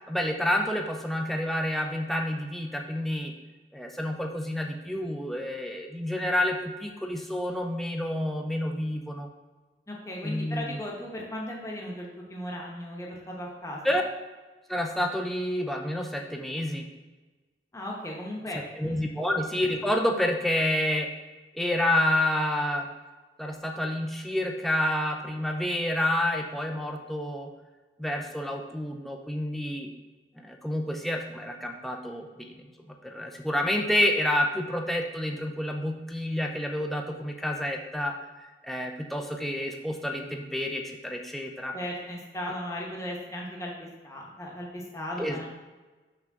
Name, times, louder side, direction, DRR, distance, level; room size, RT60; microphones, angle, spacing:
voice 1, 0.1-3.3 3.7-9.3 10.2-10.8 13.8-14.0 14.7-16.9 18.8-21.1 21.5-22.9 23.4-27.5 28.0-29.9 30.4-32.6 33.0-38.2 38.6-41.7 45.2-45.4, left 1 dB, ahead, 2 dB, 0.4 m, -29 dB
voice 2, 9.9-14.0 17.7-19.1 41.7-43.7 44.0-45.5, left 1 dB, 15° left, -3 dB, 0.9 m, -36 dB
5.9 x 3.3 x 5.8 m, 1.3 s
head